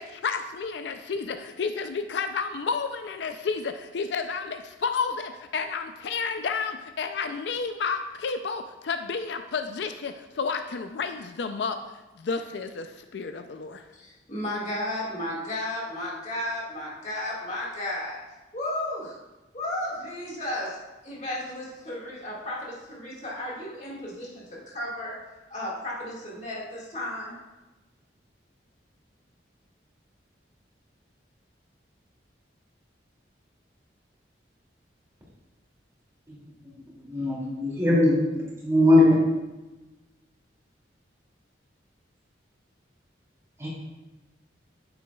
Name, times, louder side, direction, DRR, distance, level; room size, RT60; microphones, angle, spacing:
voice 1, 0.0-11.8 12.2-13.8, left 5 dB, 70° left, 8 dB, 0.4 m, -31 dB
voice 2, 13.9-18.2 18.5-19.2 19.5-25.2 25.5-27.3, left 1 dB, 40° left, -4 dB, 1.8 m, -34 dB
voice 3, 37.1-38.1 38.6-39.2 43.6-43.7, left 1 dB, 15° right, -6 dB, 2.4 m, -19 dB
9.2 x 7.8 x 2.3 m, 1.1 s
head